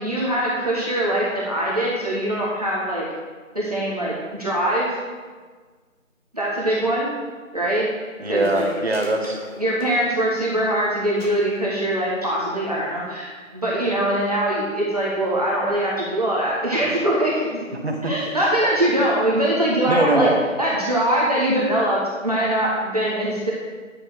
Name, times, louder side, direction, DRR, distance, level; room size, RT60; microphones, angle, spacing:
voice 1, 0.0-3.1 3.5-4.9 6.3-7.1 7.5-7.9 8.3-8.7 9.6-17.7 18.0-20.3 20.6-23.5, right 1 dB, 30° right, -6 dB, 1.3 m, -22 dB
sound 1, 8.1-8.2 8.3-10.3 10.5-10.8 11.2-11.3 11.6-12.1 12.9-13.0, left 1 dB, 45° left, 2.9 m, -41 dB
voice 2, 8.2-9.4 17.7-18.1 19.9-20.4, right 2 dB, 50° right, 2 dB, 1.4 m, -22 dB
9.7 x 6.9 x 4.7 m, 1.5 s
figure-of-eight pair, 180°, 40 cm